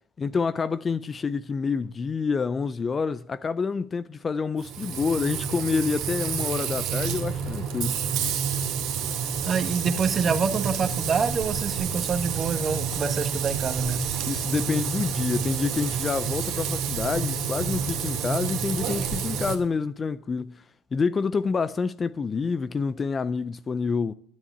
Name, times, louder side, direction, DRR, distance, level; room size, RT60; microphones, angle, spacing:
voice 1, 0.2-8.0 14.2-20.6 20.9-24.1, left 5 dB, 25° left, 0.4 m, -27 dB
Frying (food), 4.6-19.6, right 7 dB, 60° right, 2.5 m, -29 dB
voice 2, 9.5-14.0, right 5 dB, 30° right, 1.4 m, -26 dB
9.9 x 9.5 x 8.5 m
supercardioid pair, 100°, 0 cm